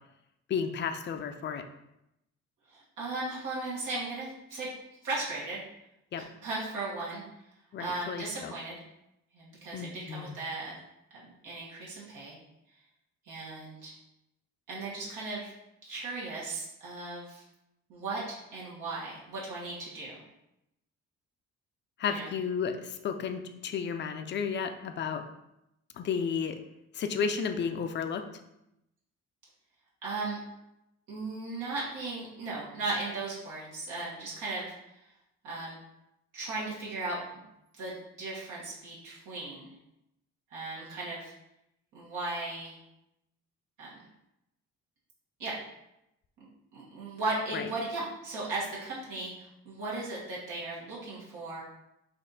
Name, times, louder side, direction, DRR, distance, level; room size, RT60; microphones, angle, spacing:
voice 1, 0.5-1.6 6.1-6.2 7.7-8.5 9.7-10.4 22.0-25.2 25.9-26.6 26.9-28.2 47.5-47.7, left 6 dB, 40° left, 7 dB, 0.4 m, -32 dB
voice 2, 2.7-4.7 5.0-5.6 6.2-7.2 7.8-8.8 9.3-10.7 11.1-12.3 13.3-13.9 14.7-15.5 15.8-17.4 17.9-20.2 22.1-22.3 30.0-30.4 31.1-34.7 35.4-35.8 36.3-37.4 37.8-39.7 40.5-41.3 41.9-42.8 43.8-44.0 45.4-45.6 46.4-46.5 46.7-51.6, right 2 dB, 85° right, -6 dB, 1.4 m, -36 dB
4.2 x 2.7 x 4.0 m, 0.85 s
cardioid pair, 90°, 30 cm